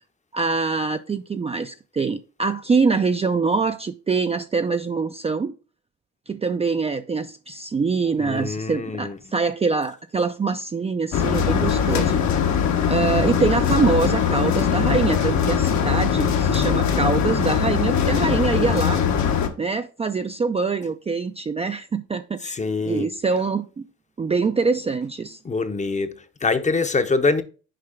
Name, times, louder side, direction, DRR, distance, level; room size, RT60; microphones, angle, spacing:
voice 1, 0.3-5.5 6.3-12.2 12.9-19.0 19.6-22.6 22.9-23.8 24.2-25.4, right 4 dB, 20° right, 0.4 m, -24 dB
voice 2, 8.2-9.2 22.4-23.1 25.4-27.4, left 3 dB, 25° left, 0.7 m, -24 dB
sound 1, 11.1-19.5, left 7 dB, 65° left, 1.1 m, -21 dB
6.6 x 4.8 x 3.5 m
cardioid pair, 90°, 30 cm